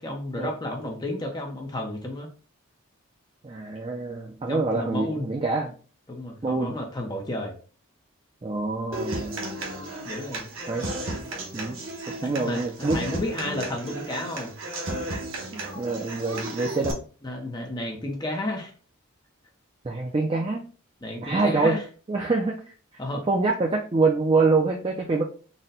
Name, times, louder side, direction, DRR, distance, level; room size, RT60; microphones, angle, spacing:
voice 1, 0.0-2.3 4.5-5.3 6.1-7.5 10.0-10.5 12.2-14.5 17.2-18.7 21.0-21.8 23.0-23.2, left 1 dB, 20° left, 1 dB, 0.6 m, -32 dB
voice 2, 3.4-5.7 6.4-6.8 8.4-9.4 10.7-10.8 11.5-11.8 12.2-13.1 15.5-17.0 19.8-20.6 21.2-21.7 22.1-22.6 23.3-25.2, right 3 dB, 25° right, 0 dB, 0.4 m, -25 dB
Human voice / Acoustic guitar, 8.9-16.9, right 1 dB, 65° right, 1.0 m, -34 dB
4.1 x 2.2 x 3.8 m, 0.39 s
head